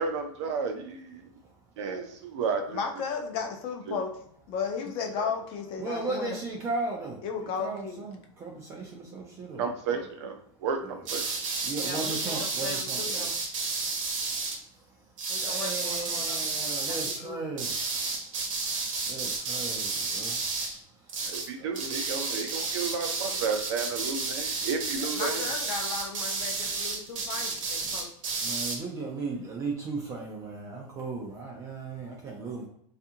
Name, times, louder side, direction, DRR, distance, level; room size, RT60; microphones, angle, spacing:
voice 1, 0.0-1.3 1.8-2.8 3.9-4.0 5.1-5.2 9.6-11.2 21.3-25.5, right 5 dB, 60° right, 5 dB, 0.6 m, -32 dB
voice 2, 2.7-4.1 4.5-6.3 7.2-8.0 10.0-10.1 11.8-13.3 15.3-16.5 16.9-17.4 24.9-28.1, left 5 dB, 35° left, 3 dB, 0.6 m, -35 dB
voice 3, 5.8-9.7 10.0-10.1 10.8-13.3 14.2-21.7 28.4-32.7, right 3 dB, 20° right, 0 dB, 0.4 m, -37 dB
sound 1, 11.0-14.6 15.2-17.2 17.6-20.8 21.1-21.5 21.7-28.8, right 4 dB, 85° right, 0.8 m, -31 dB
2.6 x 2.4 x 2.7 m, 0.68 s
supercardioid pair, 155°, 16 cm